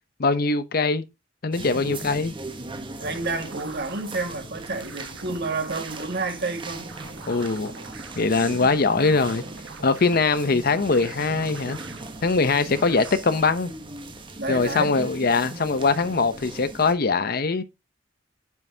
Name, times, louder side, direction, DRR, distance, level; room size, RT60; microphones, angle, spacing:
voice 1, 0.2-1.0 1.4-2.3 7.3-7.7 8.2-9.4 9.8-11.8 12.2-13.7 14.5-17.6, left 4 dB, 50° left, 0.7 m, -22 dB
sound 1, 1.5-16.9, right 2 dB, 25° right, 1.0 m, -39 dB
voice 2, 1.8-2.2 2.9-6.9 12.7-13.0 14.4-14.9, right 3 dB, 60° right, 1.7 m, -31 dB
sound 2, 3.0-13.2, right 4 dB, 80° right, 1.4 m, -45 dB
9.3 x 5.6 x 2.7 m
head